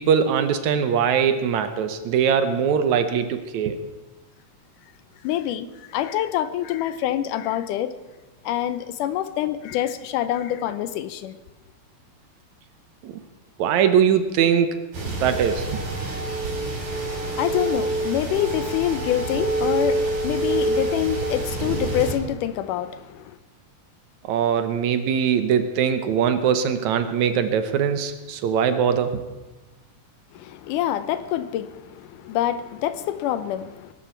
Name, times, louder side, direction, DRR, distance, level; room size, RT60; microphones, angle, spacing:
voice 1, 0.0-3.8 13.0-13.1 13.6-15.8 24.2-29.2, right 7 dB, 70° right, 2.1 m, -21 dB
voice 2, 5.2-7.9 8.4-11.4 16.9-23.4 30.3-33.9, left 11 dB, 80° left, 2.2 m, -26 dB
sound 1, 14.9-22.1, right 2 dB, 85° right, 5.9 m, -26 dB
21.0 x 12.0 x 4.5 m
omnidirectional pair, 3.8 m